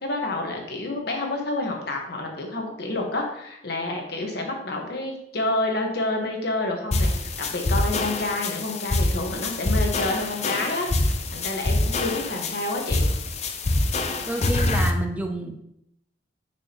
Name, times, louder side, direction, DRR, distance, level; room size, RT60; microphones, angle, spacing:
voice 1, 0.0-13.1, left 2 dB, 65° left, 1 dB, 1.4 m, -29 dB
sound 1, 6.9-14.9, left 2 dB, 40° left, 0.6 m, -25 dB
voice 2, 14.3-15.6, right 1 dB, 10° right, 3 dB, 0.5 m, -29 dB
6.3 x 6.2 x 3.0 m, 0.78 s
head